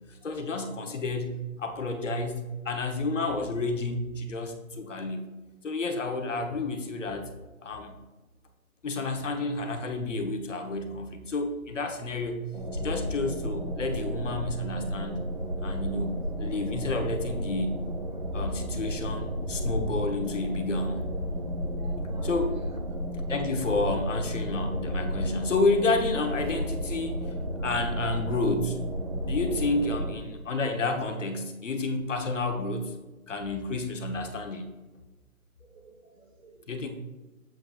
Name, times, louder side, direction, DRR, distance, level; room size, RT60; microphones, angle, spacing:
voice 1, 0.2-5.2 5.6-7.3 7.6-8.0 8.8-12.4 12.7-15.2 15.6-17.7 18.3-21.0 22.2-22.5 23.3-27.2 27.6-28.8 29.3-32.9 33.3-34.7 36.7-36.9, left 3 dB, 60° left, 4 dB, 1.1 m, -30 dB
sound 1, 12.5-30.1, equal, 35° right, 0.6 m, -32 dB
voice 2, 21.8-23.0 23.6-24.0 27.8-28.4 29.5-30.0 35.6-36.7, right 3 dB, 65° right, 5 dB, 1.3 m, -51 dB
7.7 x 7.5 x 2.4 m, 1.1 s
hypercardioid pair, 170°, 43 cm